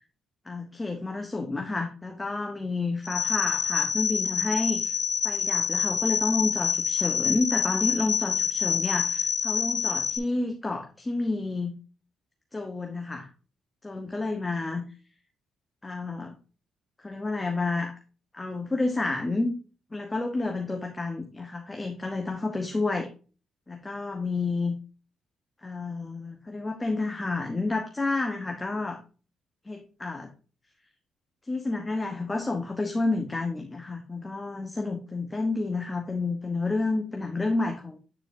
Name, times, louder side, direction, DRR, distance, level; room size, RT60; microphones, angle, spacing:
voice 1, 0.4-5.0 5.2-11.7 12.5-13.3 13.8-14.9 15.8-16.4 17.0-17.9 18.3-19.5 19.9-23.1 23.7-24.7 25.6-29.0 29.6-30.3 31.5-38.0, left 3 dB, 20° left, 3 dB, 1.0 m, -30 dB
sound 1, 3.0-10.2, left 7 dB, 50° left, 1.0 m, -27 dB
9.2 x 4.4 x 2.7 m, 0.35 s
cardioid pair, 90°, 0 cm